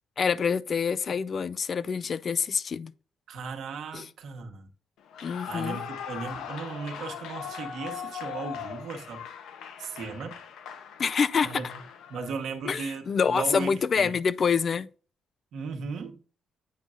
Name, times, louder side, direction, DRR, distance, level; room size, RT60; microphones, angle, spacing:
voice 1, 0.2-2.9 3.9-4.1 5.2-5.8 11.0-11.6 12.7-14.9, left 6 dB, 45° left, 0.4 m, -26 dB
voice 2, 3.3-4.7 5.2-9.2 9.8-10.3 11.4-11.8 12.1-14.2 15.5-16.2, right 5 dB, 75° right, 1.1 m, -37 dB
Clapping / Cheering / Applause, 5.1-12.5, left 8 dB, 80° left, 0.8 m, -40 dB
8.3 x 5.3 x 2.5 m
cardioid pair, 90°, 0 cm